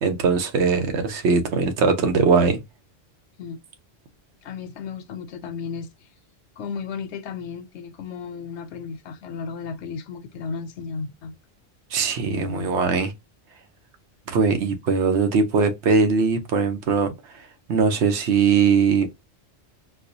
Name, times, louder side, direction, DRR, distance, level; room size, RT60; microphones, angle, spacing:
voice 1, 0.0-2.6 11.9-13.1 14.3-17.1 17.7-19.1, right 5 dB, 85° right, 1.0 m, -20 dB
voice 2, 4.4-5.9 6.6-11.3 12.3-12.7, left 5 dB, 85° left, 0.9 m, -34 dB
4.4 x 2.1 x 2.6 m
omnidirectional pair, 1.1 m